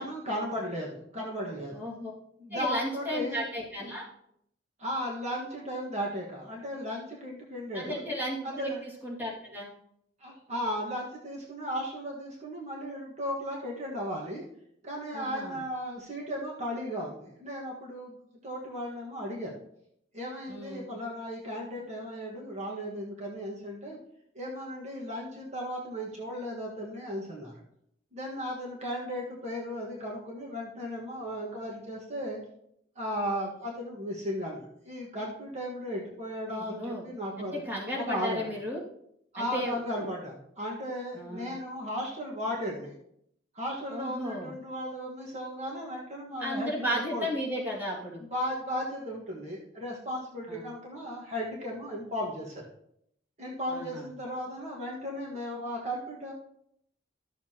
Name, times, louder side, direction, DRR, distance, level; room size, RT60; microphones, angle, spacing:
voice 1, 0.0-1.7 2.4-3.4 4.8-8.0 8.4-8.8 10.2-14.4 14.8-19.6 20.1-24.0 24.3-27.5 28.1-32.4 32.9-37.6 38.0-38.4 39.3-42.9 43.5-47.2 48.3-52.7 53.4-56.3, equal, 40° right, -3 dB, 1.6 m, -35 dB
voice 2, 1.7-2.1 2.5-4.0 7.7-8.7 9.0-9.7 15.1-15.6 20.5-20.9 36.5-37.1 37.4-38.8 39.4-39.8 41.1-41.5 43.9-44.5 46.4-48.2 50.5-50.7 53.7-54.1, equal, 10° right, -5 dB, 2.2 m, -34 dB
12.5 x 7.0 x 2.9 m, 0.72 s
head